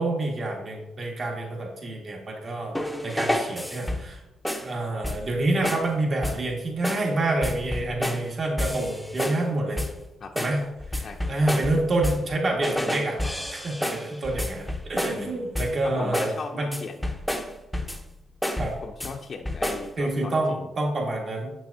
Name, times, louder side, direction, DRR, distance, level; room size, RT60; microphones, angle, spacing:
voice 1, 0.0-2.7 3.0-4.2 4.6-9.8 10.3-10.6 11.0-13.2 13.5-16.8 18.6-18.7 20.0-21.5, right 2 dB, 40° right, -1 dB, 1.8 m, -27 dB
sound 1, 2.7-4.2 4.4-4.7 5.0-5.4 5.6-5.9 6.2-6.5 6.8-7.1 7.4-8.3 8.6-9.5 9.8-10.0 10.4-12.3 12.6-15.3 15.5-15.8 16.1-16.4 16.7-18.1 18.4-19.1 19.4-19.9, left 1 dB, 5° left, 0.7 m, -30 dB
voice 2, 15.8-17.1 18.8-20.6, left 4 dB, 45° left, 1 dB, 0.6 m, -37 dB
8.2 x 6.0 x 2.7 m, 0.93 s
cardioid pair, 90°, 0 cm